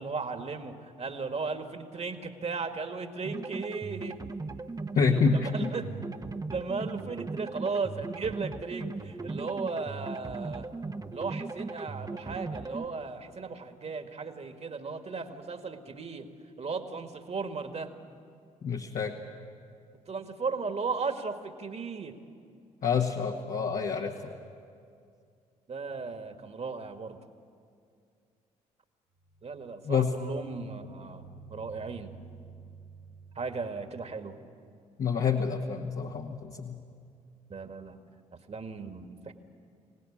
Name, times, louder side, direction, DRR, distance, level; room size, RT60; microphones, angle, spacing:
voice 1, 0.0-4.2 5.3-5.9 6.5-10.7 11.1-16.3 16.6-17.9 20.1-22.2 25.7-27.2 29.4-31.2 31.5-32.1 33.4-34.4 37.5-38.0 38.5-39.3, right 4 dB, 40° right, 7 dB, 2.0 m, -36 dB
sound 1, 3.2-12.8, right 3 dB, 20° right, 1.1 m, -38 dB
voice 2, 4.9-5.7 18.6-19.1 22.8-24.3 29.8-30.1 35.0-36.8, left 5 dB, 55° left, 0 dB, 1.7 m, -27 dB
sound 2, 29.2-33.9, right 6 dB, 70° right, 2.8 m, -51 dB
25.5 x 18.0 x 8.8 m, 2.4 s
hypercardioid pair, 45°, 17 cm